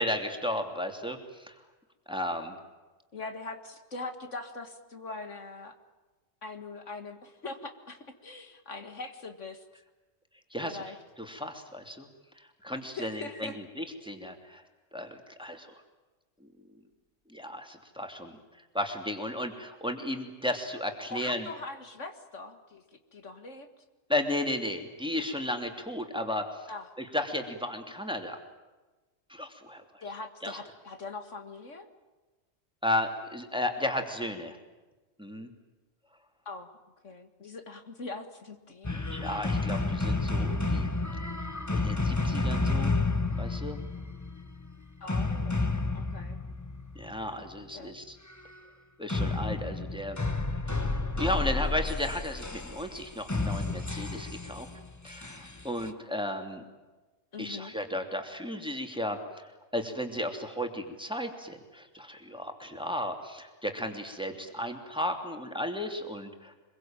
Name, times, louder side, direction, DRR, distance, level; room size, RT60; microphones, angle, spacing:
voice 1, 0.0-1.5 2.1-2.6 10.5-10.8 11.2-12.1 12.4-14.6 14.9-15.7 17.3-18.4 18.7-21.5 24.1-26.7 27.0-28.4 29.3-30.0 30.4-30.6 32.8-34.6 35.2-35.5 39.1-41.2 41.7-42.9 43.4-43.8 46.9-48.2 49.0-50.2 51.2-54.7 55.0-56.6 57.4-66.5, left 1 dB, 5° right, 4 dB, 2.8 m, -34 dB
voice 2, 3.1-5.8 6.4-9.6 10.6-11.0 12.9-13.6 21.1-23.7 26.7-26.9 30.0-31.9 36.5-36.7 37.0-39.0 45.0-46.4 47.7-48.0 57.3-57.7, left 3 dB, 70° left, 7 dB, 2.2 m, -42 dB
sound 1, 38.8-47.2 49.1-55.9, left 3 dB, 15° left, 1.2 m, -31 dB
25.5 x 23.0 x 9.0 m, 1.2 s
omnidirectional pair, 1.3 m